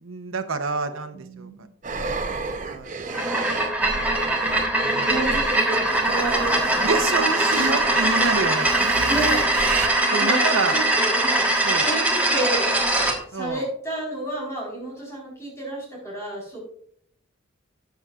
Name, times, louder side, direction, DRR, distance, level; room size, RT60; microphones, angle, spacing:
voice 1, 0.0-1.7 2.6-3.4 4.8-5.1 6.8-9.2 10.1-10.7 11.6-11.9 13.3-13.7, right 4 dB, 80° right, 9 dB, 0.8 m, -28 dB
voice 2, 0.9-1.6 5.0-7.0 9.1-9.5 10.2-12.7 13.3-16.6, right 1 dB, 15° left, -3 dB, 4.3 m, -31 dB
sound 1, 1.8-9.9, right 4 dB, 40° right, 0.7 m, -31 dB
sound 2, 3.1-13.2, right 1 dB, 10° right, 1.4 m, -22 dB
13.0 x 8.1 x 2.4 m, 0.62 s
head